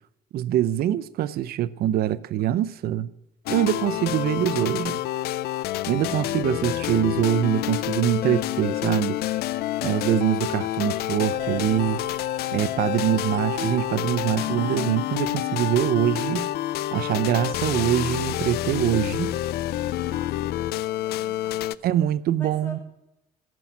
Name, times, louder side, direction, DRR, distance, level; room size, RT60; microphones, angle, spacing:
voice 1, 0.3-3.1 3.5-5.0 5.9-9.2 9.8-12.0 12.5-16.5 16.9-19.4 21.8-22.8, right 11 dB, 65° right, 0.6 m, -24 dB
sound 1, 3.5-21.8, left 14 dB, 70° left, 0.4 m, -28 dB
sound 2, 11.3-16.8, right 5 dB, 45° right, 1.3 m, -41 dB
voice 2, 20.0-21.7 22.4-22.8, equal, 15° left, 5.5 m, -44 dB
15.0 x 6.1 x 9.2 m
cardioid pair, 110°, 17 cm